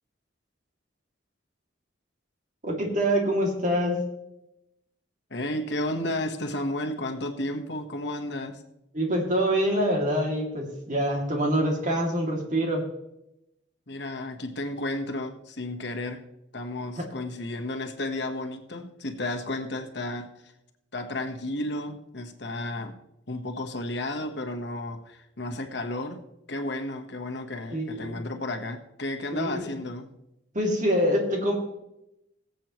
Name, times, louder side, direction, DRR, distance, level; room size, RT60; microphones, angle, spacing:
voice 1, 2.6-4.0 8.9-12.8 27.7-28.2 29.4-29.6 30.5-31.5, equal, 40° right, 0 dB, 2.7 m, -25 dB
voice 2, 5.3-8.6 13.9-16.3 16.5-20.5 20.9-23.0 23.3-26.2 26.5-30.1, left 1 dB, 60° left, 5 dB, 1.4 m, -33 dB
21.5 x 8.0 x 3.1 m, 0.86 s
head